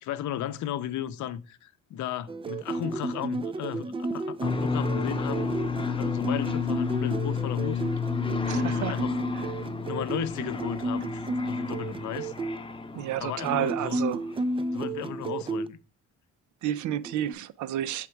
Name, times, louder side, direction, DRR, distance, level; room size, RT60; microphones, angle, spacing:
voice 1, 0.0-5.5 6.0-7.8 8.5-9.2 9.9-12.3 13.2-14.0 14.7-15.8, left 11 dB, 75° left, 0.6 m, -35 dB
sound 1, 2.3-12.6 13.4-15.7 16.8-17.3, right 2 dB, 20° right, 0.3 m, -32 dB
sound 2, 4.4-14.0, left 6 dB, 15° left, 0.7 m, -32 dB
voice 2, 8.4-9.0 12.9-14.2 16.6-18.1, right 12 dB, 75° right, 0.5 m, -30 dB
6.0 x 3.7 x 4.5 m
cardioid pair, 90°, 30 cm